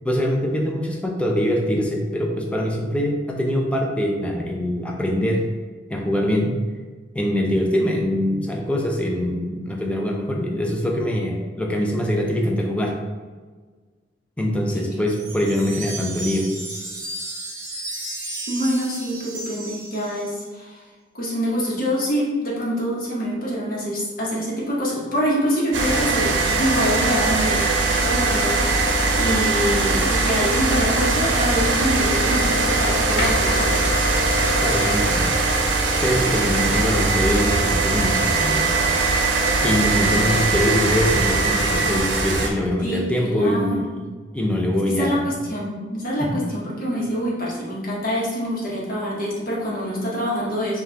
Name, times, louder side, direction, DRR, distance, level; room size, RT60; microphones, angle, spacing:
voice 1, 0.0-5.4 5.9-6.6 7.1-12.9 14.4-16.5 34.4-35.3 36.0-38.8 39.6-44.1 44.3-45.3 46.2-46.5, equal, 5° left, 0 dB, 0.5 m, -23 dB
Wind chime, 15.1-20.4, right 2 dB, 40° right, 0.9 m, -34 dB
voice 2, 18.5-20.8 21.1-27.6 28.0-33.8 42.8-43.8 44.9-50.8, equal, 50° left, -5 dB, 1.0 m, -25 dB
sound 1, 25.7-42.5, right 3 dB, 75° right, 0.6 m, -21 dB
sound 2, 30.1-30.5 31.1-31.2 31.7-32.5 33.0-33.8 37.3-38.7 40.0-40.6, left 1 dB, 85° left, 0.7 m, -34 dB
5.1 x 2.4 x 2.8 m, 1.4 s
head